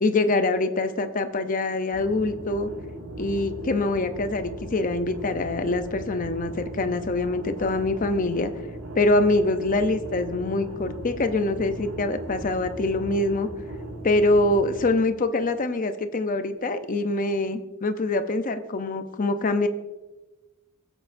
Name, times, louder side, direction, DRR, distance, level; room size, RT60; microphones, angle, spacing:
voice 1, 0.0-2.7 3.2-8.5 9.0-13.5 14.0-19.7, left 2 dB, 40° left, 9 dB, 0.6 m, -24 dB
sound 1, 1.9-14.9, right 1 dB, 80° right, 2.0 m, -38 dB
17.5 x 8.0 x 2.6 m, 1.1 s
head